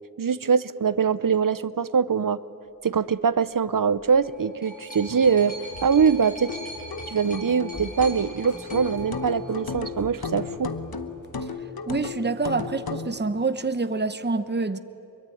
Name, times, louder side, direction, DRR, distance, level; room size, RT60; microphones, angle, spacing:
voice 1, 0.2-2.4 2.8-6.6 7.1-10.7, right 6 dB, 65° right, 17 dB, 0.7 m, -23 dB
sound 1, 4.0-9.9 10.8-10.9, equal, 25° left, 8.0 m, -42 dB
sound 2, 5.1-11.4, left 1 dB, 55° left, 2.7 m, -43 dB
sound 3, 6.5-13.1, left 4 dB, 90° left, 1.1 m, -34 dB
voice 2, 11.9-14.8, right 3 dB, 30° right, 11 dB, 0.9 m, -26 dB
23.5 x 23.0 x 9.3 m, 3.0 s
wide cardioid pair, 45°, 35 cm